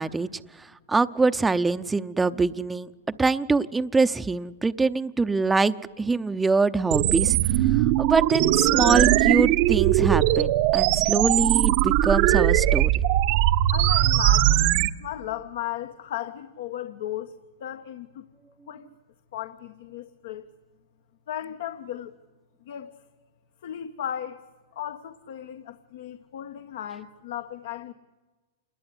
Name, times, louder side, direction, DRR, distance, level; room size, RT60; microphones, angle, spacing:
voice 1, 0.0-2.9 3.2-7.4 7.7-12.9, right 3 dB, 10° right, 0.8 m, -24 dB
sound 1, 6.9-14.9, right 14 dB, 50° right, 1.0 m, -20 dB
voice 2, 13.7-14.7 15.0-18.3 18.7-18.9 19.3-20.5 21.3-22.1 22.6-22.9 23.6-24.4 24.7-27.9, left 11 dB, 70° left, 1.5 m, -35 dB
28.0 x 20.5 x 9.8 m
hypercardioid pair, 130°, 0 cm